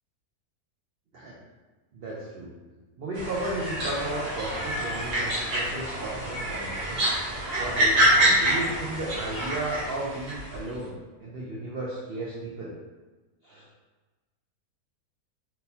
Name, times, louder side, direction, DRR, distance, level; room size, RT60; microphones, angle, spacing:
voice 1, 1.9-7.1 7.6-12.7 13.4-13.7, right 2 dB, 85° right, -5 dB, 0.5 m, -34 dB
sound 1, 3.1-10.6, right 1 dB, 60° right, 1.3 m, -26 dB
4.2 x 2.1 x 2.7 m, 1.2 s
omnidirectional pair, 1.7 m